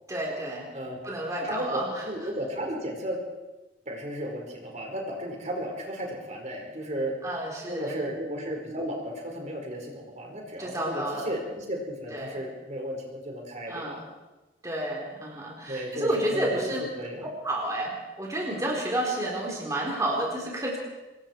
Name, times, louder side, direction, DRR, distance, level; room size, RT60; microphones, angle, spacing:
voice 1, 0.1-0.7 1.0-2.0 7.2-8.0 10.6-11.3 12.1-12.4 13.7-14.0 14.6-16.8 17.4-20.8, right 1 dB, 20° right, -2 dB, 4.2 m, -30 dB
voice 2, 1.4-3.2 3.9-7.2 7.7-14.0 15.7-17.3, equal, 40° right, 1 dB, 4.9 m, -34 dB
26.5 x 21.5 x 4.7 m, 1.1 s
head